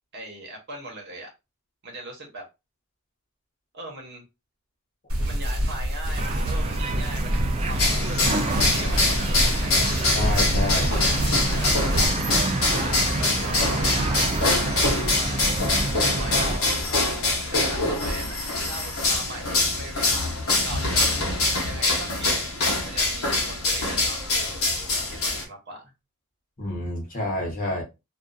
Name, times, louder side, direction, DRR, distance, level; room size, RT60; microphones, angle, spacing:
voice 1, 0.1-1.3 1.8-2.5 3.7-4.2 5.2-8.1 8.6-9.9 10.7-11.9 12.4-14.3 15.0-15.6 16.2-21.2 21.6-22.4 22.8-25.9, right 1 dB, 50° right, 1.0 m, -39 dB
sound 1, 5.1-12.1, equal, 80° right, 1.1 m, -27 dB
sound 2, 6.2-16.6, right 2 dB, 30° right, 0.3 m, -28 dB
sound 3, 7.8-25.4, left 2 dB, 70° left, 0.9 m, -24 dB
voice 2, 9.8-10.9 26.6-27.8, left 1 dB, 40° left, 0.9 m, -29 dB
2.6 x 2.4 x 2.2 m
head